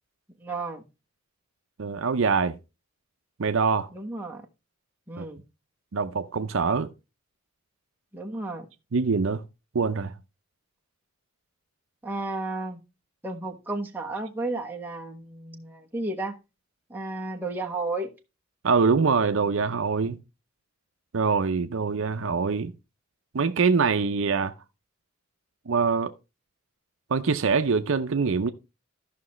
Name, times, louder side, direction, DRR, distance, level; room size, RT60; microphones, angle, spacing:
voice 1, 0.4-0.8 3.9-4.4 5.1-5.4 8.1-8.7 12.0-12.8 13.2-16.4 16.9-18.1, right 2 dB, 10° right, 1.2 m, -33 dB
voice 2, 1.8-2.6 3.4-3.9 5.2-5.3 5.9-6.9 8.9-9.4 9.7-10.1 18.6-20.2 21.1-22.7 23.3-24.5 25.7-26.1 27.1-28.5, right 5 dB, 65° right, 0.6 m, -24 dB
13.5 x 5.8 x 3.1 m
head